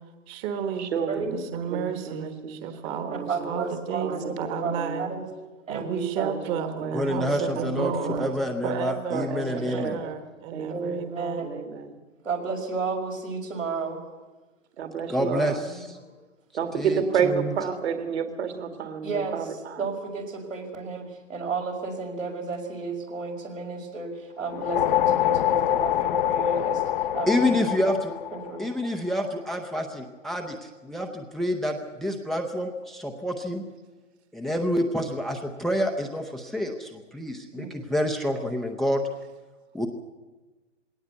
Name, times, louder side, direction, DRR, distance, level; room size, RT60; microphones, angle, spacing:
voice 1, 0.3-0.9 1.2-5.1 5.7-8.3 8.6-11.5, right 7 dB, 25° right, 8 dB, 1.3 m, -32 dB
voice 2, 0.8-1.3 1.7-2.6 3.1-3.6 4.0-5.3 6.2-6.4 6.8-8.5 9.1-10.2 10.5-11.1 11.4-11.9 14.8-15.6 16.5-19.8, right 7 dB, 60° right, 7 dB, 2.4 m, -31 dB
voice 3, 3.3-5.2 5.7-6.3 9.6-9.9 10.7-11.6 12.2-14.0 15.6-15.8 19.0-19.4 19.8-26.8 27.1-27.8 28.3-28.6 34.4-34.6 37.5-37.7, right 4 dB, 85° right, 1 dB, 5.4 m, -32 dB
voice 4, 6.9-10.0 15.1-15.5 16.8-17.0 27.3-28.1 28.6-33.6 34.3-39.0 39.7-39.9, left 1 dB, ahead, 4 dB, 0.6 m, -28 dB
sound 1, 24.4-29.0, left 12 dB, 45° left, 0.7 m, -25 dB
20.0 x 17.5 x 8.2 m, 1.2 s
hypercardioid pair, 130°, 38 cm